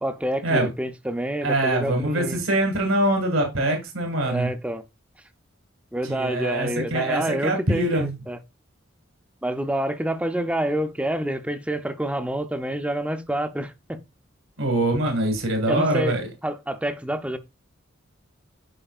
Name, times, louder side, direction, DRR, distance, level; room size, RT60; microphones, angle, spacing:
voice 1, 0.0-2.4 4.2-4.8 5.9-8.4 9.4-14.0 15.7-16.1 16.4-17.4, right 1 dB, 5° right, 0.5 m, -27 dB
voice 2, 1.4-4.5 6.0-8.2 14.6-16.3, right 1 dB, 85° right, 2.0 m, -23 dB
8.8 x 5.3 x 2.4 m
head